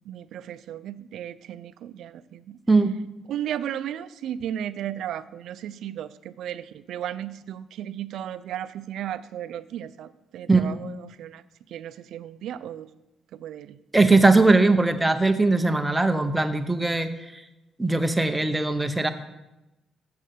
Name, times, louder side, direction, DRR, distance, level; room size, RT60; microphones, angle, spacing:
voice 1, 0.1-2.6 3.3-11.4 11.7-12.9 13.3-13.8, right 10 dB, 75° right, 16 dB, 0.4 m, -35 dB
voice 2, 13.9-17.1 17.8-19.1, right 3 dB, 10° right, 8 dB, 0.7 m, -20 dB
7.5 x 6.5 x 6.6 m, 1.0 s
cardioid pair, 90°, 0 cm